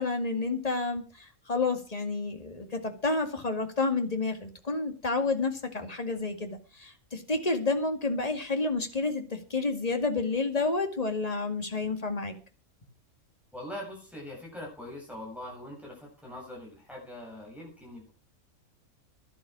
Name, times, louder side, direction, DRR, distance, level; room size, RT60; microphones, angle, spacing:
voice 1, 0.0-12.3, left 3 dB, 25° left, 6 dB, 2.2 m, -30 dB
voice 2, 13.5-18.1, left 1 dB, ahead, -3 dB, 7.7 m, -42 dB
12.0 x 11.5 x 6.2 m, 0.34 s
omnidirectional pair, 1.5 m